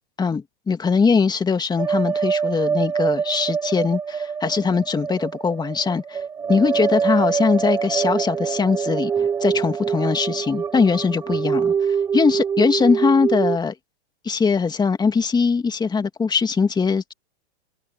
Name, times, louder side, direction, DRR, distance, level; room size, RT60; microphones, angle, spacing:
voice 1, 0.2-6.2 6.5-9.1 9.4-13.7 14.2-17.1, left 5 dB, 10° left, 2.3 m, -21 dB
sound 1, 1.8-13.6, right 6 dB, 10° right, 0.4 m, -24 dB
open air
hypercardioid pair, 120°, 34 cm